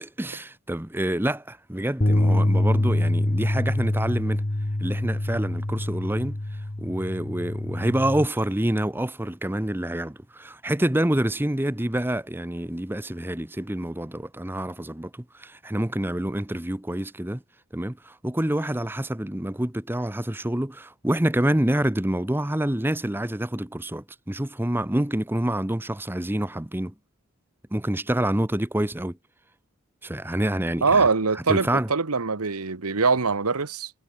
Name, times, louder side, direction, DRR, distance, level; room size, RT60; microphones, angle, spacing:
voice 1, 0.0-4.4 4.8-6.4 6.8-17.4 17.7-26.9 27.7-29.2 30.0-31.1 31.5-31.9, right 1 dB, 10° right, 0.8 m, -27 dB
sound 1, 2.0-8.3, left 1 dB, 35° left, 1.1 m, -25 dB
voice 2, 30.8-33.9, right 4 dB, 90° right, 1.3 m, -23 dB
head